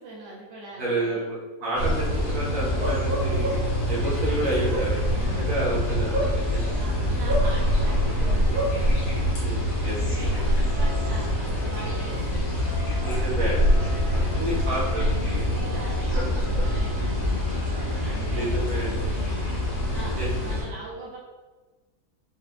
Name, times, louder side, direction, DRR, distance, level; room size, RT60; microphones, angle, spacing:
voice 1, 0.0-1.3 5.1-6.0 6.8-9.4 9.8-12.5 14.1-19.5 19.9-21.2, right 2 dB, 80° right, -5 dB, 1.5 m, -42 dB
voice 2, 0.8-3.5 3.9-6.7 9.4-9.6 9.8-9.9 13.0-15.5 18.3-18.9 20.2-20.3, right 1 dB, 60° right, -7 dB, 1.6 m, -30 dB
sound 1, 1.7-20.6, equal, 80° left, 1.9 m, -25 dB
Bark, 2.7-3.8 4.4-6.8 7.3-8.8, equal, 35° right, 1.1 m, -30 dB
sound 2, 10.7-11.2 11.6-12.2 12.6-13.1 13.5-14.1 14.5-15.1 15.5-16.0 16.4-17.0 17.4-18.0, right 1 dB, 55° left, 1.1 m, -44 dB
6.0 x 2.4 x 2.2 m, 1.3 s
omnidirectional pair, 1.9 m